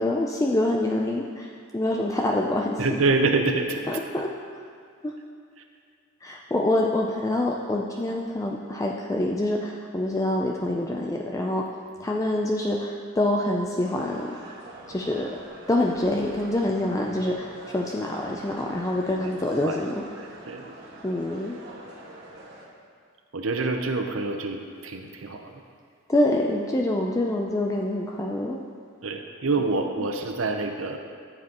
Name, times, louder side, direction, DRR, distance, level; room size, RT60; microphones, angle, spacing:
voice 1, 0.0-2.8 3.9-4.3 5.0-5.1 6.2-11.7 12.0-14.4 14.9-15.3 15.7-20.0 21.0-21.6 26.1-28.6 30.0-30.1, left 1 dB, 15° left, 0 dB, 0.4 m, -26 dB
voice 2, 2.8-3.9 19.2-19.3 19.6-19.8 20.2-20.8 23.3-25.5 29.0-31.0, right 3 dB, 80° right, 4 dB, 0.8 m, -26 dB
sound 1, 13.8-22.7, right 1 dB, 55° right, 1.5 m, -44 dB
13.5 x 7.4 x 3.0 m, 2.2 s
head